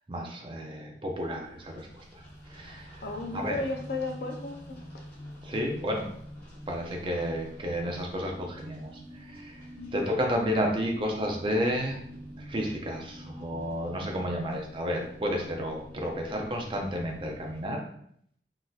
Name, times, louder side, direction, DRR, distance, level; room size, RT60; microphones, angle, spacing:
voice 1, 0.1-2.0 2.5-3.0 3.3-3.6 5.4-6.1 6.7-9.6 9.9-12.0 12.4-17.8, equal, 30° right, 1 dB, 0.5 m, -31 dB
sound 1, 1.1-17.7, equal, 10° left, 1.2 m, -46 dB
voice 2, 3.0-4.8 9.8-10.0, left 3 dB, 60° left, 2 dB, 0.5 m, -34 dB
3.8 x 2.6 x 2.3 m, 0.67 s
head